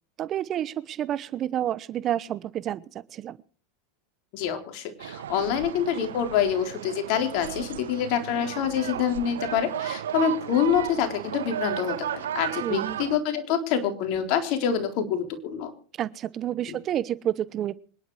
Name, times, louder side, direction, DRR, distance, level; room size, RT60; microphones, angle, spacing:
voice 1, 0.2-2.8 3.1-3.4 12.6-13.0 16.0-17.7, right 11 dB, 35° right, 19 dB, 0.8 m, -29 dB
voice 2, 4.3-15.7 16.7-16.8, left 8 dB, 55° left, 6 dB, 3.8 m, -26 dB
sound 1, 5.0-13.2, right 10 dB, 85° right, 1.3 m, -34 dB
25.0 x 11.0 x 4.8 m, 0.41 s
hypercardioid pair, 110°, 0 cm